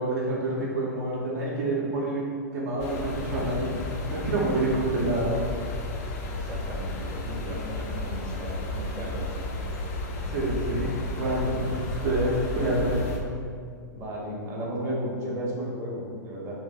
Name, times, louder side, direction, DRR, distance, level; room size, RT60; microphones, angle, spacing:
voice 1, 0.0-3.8 4.1-5.5 10.2-13.0, right 1 dB, 60° right, -5 dB, 0.6 m, -27 dB
sound 1, 2.8-13.2, left 2 dB, 50° left, 0.4 m, -33 dB
voice 2, 6.4-9.6 13.9-16.5, equal, 25° right, -5 dB, 0.7 m, -34 dB
2.6 x 2.0 x 4.0 m, 2.2 s
figure-of-eight pair, 100°, 10 cm